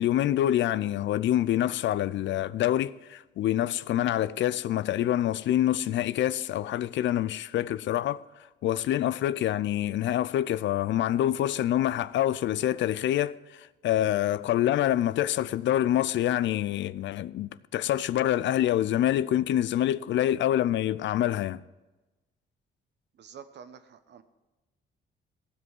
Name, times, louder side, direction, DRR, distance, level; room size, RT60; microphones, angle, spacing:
voice 1, 0.0-8.2 8.6-21.6, left 12 dB, 70° left, 0.5 m, -26 dB
voice 2, 23.1-24.2, right 7 dB, 60° right, 1.1 m, -48 dB
15.5 x 5.4 x 9.5 m
cardioid pair, 90°, 20 cm